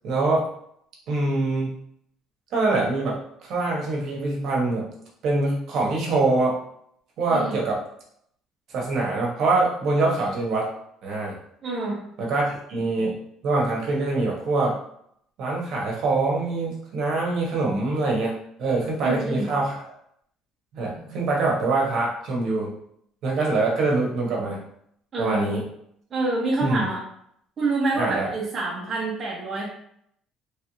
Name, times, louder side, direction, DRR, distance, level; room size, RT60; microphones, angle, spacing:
voice 1, 0.0-0.4 1.1-1.7 2.5-4.9 5.2-6.5 7.2-7.8 8.7-10.7 11.0-11.4 12.2-13.2 13.4-14.7 15.4-19.8 20.7-22.7 23.2-24.6 25.2-25.6 26.6-26.9 28.0-28.3, right 3 dB, 55° right, -2 dB, 1.0 m, -24 dB
voice 2, 11.6-12.0 19.0-19.5 25.1-25.5 26.1-27.0 27.6-29.7, right 2 dB, 30° right, -5 dB, 0.7 m, -26 dB
3.1 x 2.5 x 3.0 m, 0.70 s
cardioid pair, 155°, 0 cm